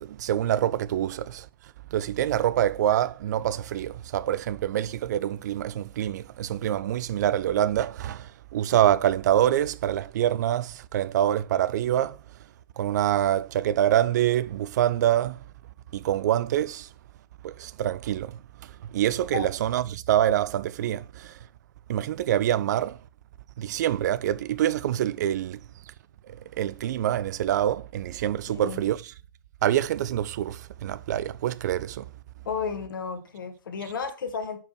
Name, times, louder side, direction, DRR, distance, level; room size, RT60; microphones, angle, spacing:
voice 1, 0.0-1.5 1.9-12.2 12.8-15.4 15.9-16.9 17.4-21.4 21.9-23.0 23.6-25.6 26.3-29.1 29.6-32.1, right 11 dB, 50° right, 0.4 m, -26 dB
voice 2, 28.5-28.8 32.4-34.6, left 6 dB, 65° left, 1.4 m, -33 dB
4.7 x 4.7 x 6.0 m
figure-of-eight pair, 115°, 12 cm